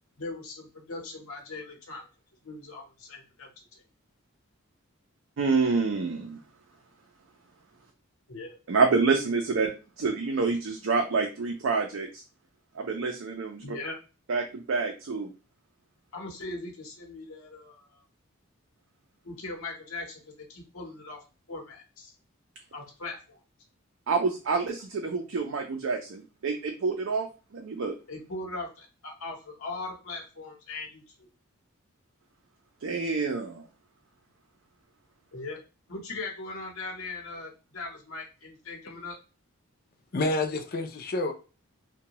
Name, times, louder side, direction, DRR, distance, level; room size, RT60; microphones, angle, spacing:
voice 1, 0.2-2.0 2.4-3.8 8.3-8.6 13.6-14.0 16.1-18.0 19.2-21.2 21.5-22.1 22.7-23.4 28.1-31.3 35.3-35.6 35.9-39.1, left 3 dB, 80° left, 0 dB, 0.9 m, -40 dB
voice 2, 5.4-6.4 8.7-12.2 12.8-13.6 14.3-15.3 24.1-27.3 27.5-27.9 32.8-33.6, right 4 dB, 65° right, 3 dB, 0.4 m, -27 dB
voice 3, 40.1-41.3, left 2 dB, 45° left, 6 dB, 0.5 m, -28 dB
2.7 x 2.2 x 2.9 m, 0.32 s
head